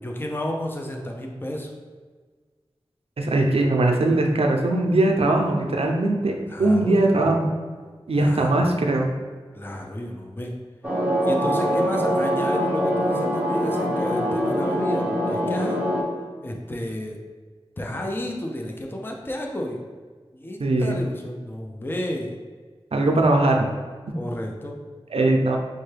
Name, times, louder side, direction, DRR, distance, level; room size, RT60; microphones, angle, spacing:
voice 1, 0.0-1.7 6.5-7.0 8.2-8.6 9.5-10.5 11.2-15.8 16.4-17.2 17.8-19.8 20.3-22.3 23.0-23.1 24.1-24.8, left 1 dB, 20° left, 1 dB, 0.5 m, -31 dB
voice 2, 3.2-6.3 6.6-7.5 8.1-9.1 20.6-21.0 22.9-23.7 25.1-25.6, right 2 dB, 75° right, 2 dB, 0.5 m, -20 dB
sound 1, 10.8-16.0, equal, 15° right, 0.9 m, -23 dB
5.3 x 2.2 x 3.2 m, 1.5 s
wide cardioid pair, 50°, 10 cm